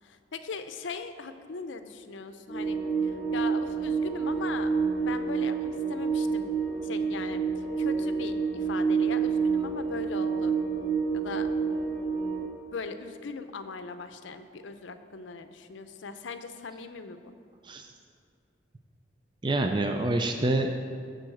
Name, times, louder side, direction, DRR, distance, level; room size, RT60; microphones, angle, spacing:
voice 1, 0.0-6.5 6.8-10.6 11.1-11.5 12.7-17.3, left 4 dB, 80° left, 9 dB, 0.6 m, -40 dB
sound 1, 2.5-12.4, right 5 dB, ahead, 1.9 m, -28 dB
voice 2, 19.4-20.7, right 2 dB, 25° right, 4 dB, 0.4 m, -27 dB
11.0 x 3.9 x 7.7 m, 2.3 s
head